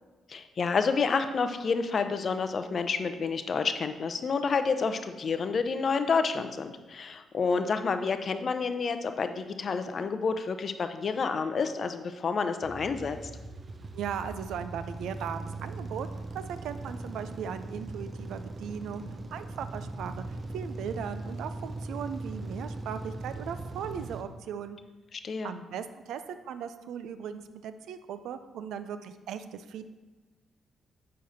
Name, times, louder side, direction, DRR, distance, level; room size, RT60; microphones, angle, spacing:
voice 1, 0.3-13.2 25.1-25.5, left 5 dB, 50° left, 9 dB, 0.5 m, -29 dB
sound 1, 12.6-24.2, right 2 dB, 40° right, 0.6 m, -40 dB
voice 2, 13.9-16.1 16.3-19.0 19.3-24.8 25.4-29.9, right 8 dB, 70° right, 11 dB, 0.3 m, -38 dB
7.5 x 6.4 x 2.7 m, 1.2 s
hypercardioid pair, 45°, 0 cm